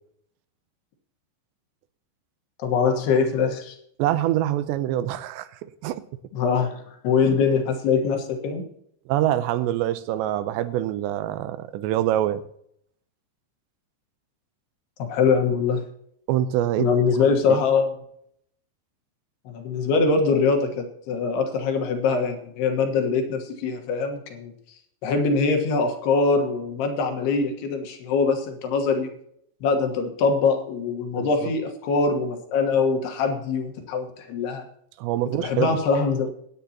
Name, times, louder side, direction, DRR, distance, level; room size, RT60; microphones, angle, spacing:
voice 1, 2.6-3.8 6.3-8.6 15.0-15.8 16.8-17.9 19.5-24.5 25.0-29.1 29.6-34.7 35.3-36.3, left 5 dB, 70° left, 4 dB, 3.3 m, -23 dB
voice 2, 4.0-6.0 9.1-12.4 16.3-16.9 17.5-17.6 31.1-31.5 35.0-35.8, right 12 dB, 85° right, 12 dB, 2.9 m, -25 dB
22.5 x 9.3 x 2.9 m, 0.71 s
omnidirectional pair, 5.1 m